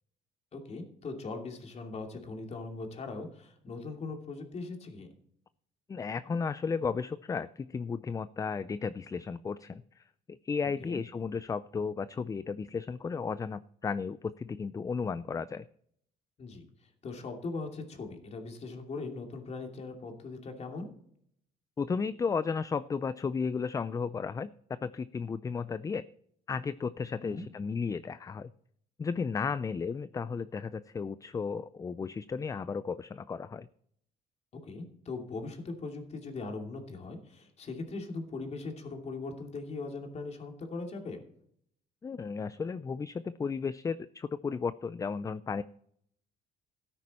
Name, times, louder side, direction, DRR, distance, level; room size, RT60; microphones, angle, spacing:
voice 1, 0.5-5.1 10.8-11.0 16.4-16.6 17.0-20.9 27.2-27.4 34.5-41.2, left 3 dB, 40° left, 3 dB, 2.7 m, -40 dB
voice 2, 5.9-15.6 21.8-24.5 24.8-26.0 26.5-28.5 29.0-33.7 42.0-45.6, left 5 dB, 20° left, 15 dB, 0.4 m, -34 dB
13.5 x 9.7 x 4.2 m, 0.65 s
cardioid pair, 110°, 17 cm